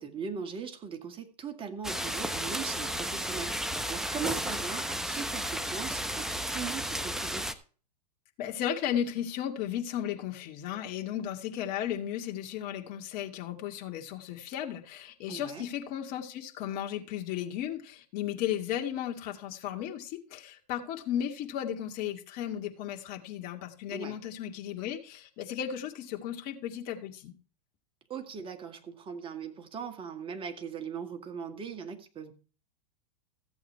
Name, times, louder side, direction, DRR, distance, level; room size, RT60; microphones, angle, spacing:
voice 1, 0.0-7.5 15.3-15.6 23.9-24.2 28.1-32.3, right 6 dB, 25° right, 1.9 m, -39 dB
sound 1, 1.8-7.5, equal, ahead, 0.9 m, -33 dB
voice 2, 8.4-27.3, left 10 dB, 45° left, 2.2 m, -35 dB
14.5 x 7.8 x 4.6 m
hypercardioid pair, 105°, 21 cm